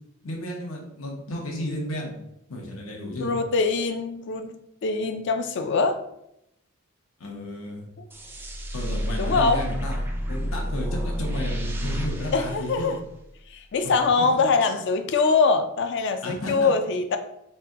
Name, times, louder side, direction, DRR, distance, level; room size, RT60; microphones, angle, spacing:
voice 1, 0.2-2.2 2.5-3.3 7.2-7.9 8.7-13.0 13.8-14.3 14.6-14.7 16.2-16.8, left 1 dB, 80° left, -1 dB, 0.9 m, -33 dB
voice 2, 3.2-4.5 4.8-6.0 8.0-8.1 9.2-9.7 12.3-13.0 13.5-17.2, left 4 dB, 60° left, 8 dB, 0.4 m, -23 dB
sound 1, 8.1-13.4, equal, 10° right, 0.4 m, -30 dB
4.1 x 2.2 x 3.6 m, 0.80 s
head